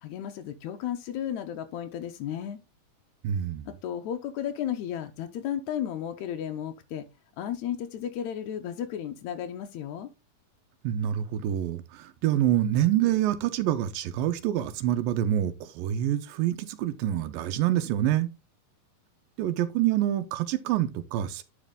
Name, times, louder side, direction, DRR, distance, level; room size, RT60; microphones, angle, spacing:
voice 1, 0.0-2.6 3.7-7.1 7.4-10.1, left 10 dB, 85° left, 1.7 m, -34 dB
voice 2, 3.2-3.7 10.8-18.3 19.4-21.4, right 12 dB, 85° right, 2.4 m, -26 dB
10.5 x 4.4 x 3.7 m
omnidirectional pair, 4.1 m